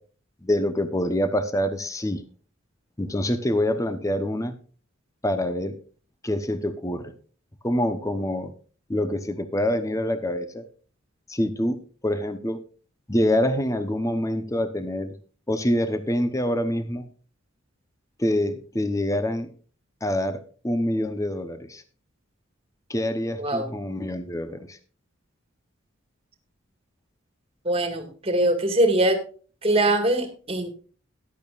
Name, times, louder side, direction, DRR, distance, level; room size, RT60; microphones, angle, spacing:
voice 1, 0.4-2.2 3.0-4.5 5.2-5.8 6.2-7.1 7.6-8.5 8.9-10.6 11.3-11.8 12.0-12.6 13.1-15.1 15.5-17.1 18.2-19.5 20.0-21.8 22.9-24.8, left 1 dB, 15° left, 10 dB, 0.9 m, -26 dB
voice 2, 23.4-23.7 27.6-29.2 29.6-30.7, right 1 dB, 30° right, 6 dB, 2.0 m, -22 dB
14.0 x 11.0 x 2.5 m, 0.39 s
head